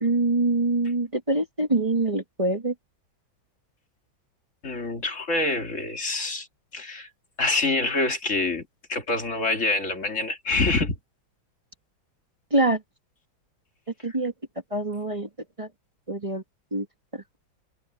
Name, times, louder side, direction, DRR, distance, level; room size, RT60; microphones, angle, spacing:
voice 1, 0.0-2.7 12.5-12.8 14.0-14.3 14.7-15.3 15.6-15.7 16.1-16.4 16.7-16.9 17.1-17.2, right 2 dB, 15° right, 1.7 m, -24 dB
voice 2, 4.6-6.5 6.7-7.1 7.4-11.0, left 3 dB, 40° left, 2.7 m, -26 dB
omnidirectional pair, 2.1 m